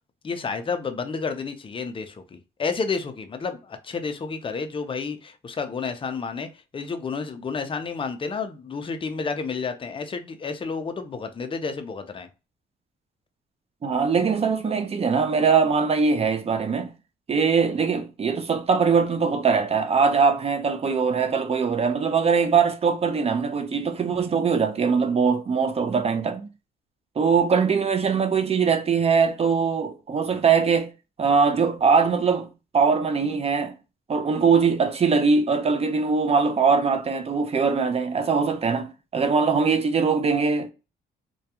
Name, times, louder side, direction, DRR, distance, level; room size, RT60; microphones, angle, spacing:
voice 1, 0.2-6.5 6.7-12.3, left 5 dB, 25° left, 0.5 m, -30 dB
voice 2, 13.8-16.9 17.3-26.5 27.2-30.9 31.2-32.5 32.7-33.7 34.1-40.7, right 5 dB, 30° right, 0.4 m, -22 dB
2.2 x 2.2 x 2.8 m
cardioid pair, 90°, 20 cm